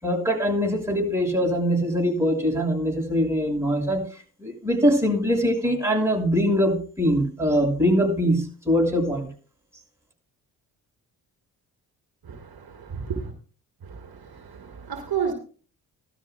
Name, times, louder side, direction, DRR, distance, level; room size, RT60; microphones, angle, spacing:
voice 1, 0.0-4.0 4.4-9.3, equal, 5° right, 5.7 m, -22 dB
voice 2, 12.2-13.3 13.8-15.3, right 7 dB, 55° right, 1.8 m, -32 dB
18.0 x 12.5 x 2.2 m
hypercardioid pair, 45°, 43 cm